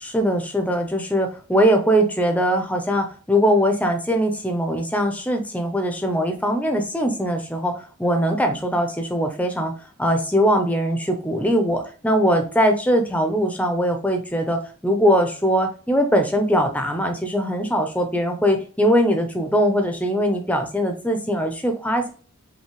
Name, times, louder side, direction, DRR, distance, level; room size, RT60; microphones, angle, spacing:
voice 1, 0.0-9.7 10.0-22.1, equal, 5° left, 5 dB, 0.6 m, -21 dB
5.6 x 2.7 x 3.0 m, 0.39 s
head